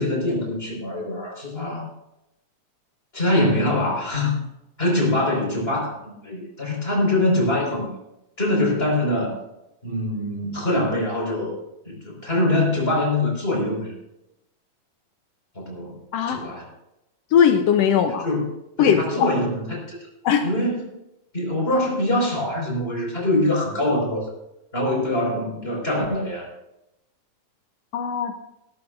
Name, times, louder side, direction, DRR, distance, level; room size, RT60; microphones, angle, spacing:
voice 1, 0.0-1.9 3.1-4.4 4.8-5.9 6.2-8.0 8.4-9.3 9.8-11.6 11.9-13.9 15.5-16.0 16.3-16.6 18.2-18.4 18.8-20.0 20.4-20.9 21.3-24.2 24.7-26.5, left 1 dB, 15° left, -2 dB, 4.9 m, -23 dB
voice 2, 17.3-18.3 18.8-19.3 20.2-20.5 27.9-28.3, left 8 dB, 80° left, 6 dB, 1.5 m, -19 dB
19.0 x 13.0 x 2.5 m, 0.88 s
omnidirectional pair, 3.7 m